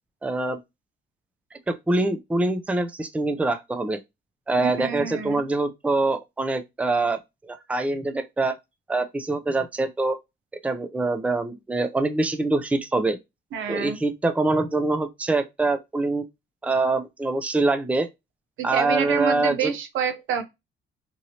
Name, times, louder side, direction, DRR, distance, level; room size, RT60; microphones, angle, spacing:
voice 1, 0.2-0.6 1.7-4.0 4.5-7.2 7.5-8.6 8.9-10.2 10.6-13.2 13.7-16.2 16.6-18.1 18.6-19.7, right 2 dB, 5° right, 0.4 m, -24 dB
voice 2, 4.6-5.4 13.5-14.0 18.6-20.4, right 7 dB, 80° right, 0.7 m, -27 dB
3.0 x 2.6 x 2.7 m
cardioid pair, 90°, 20 cm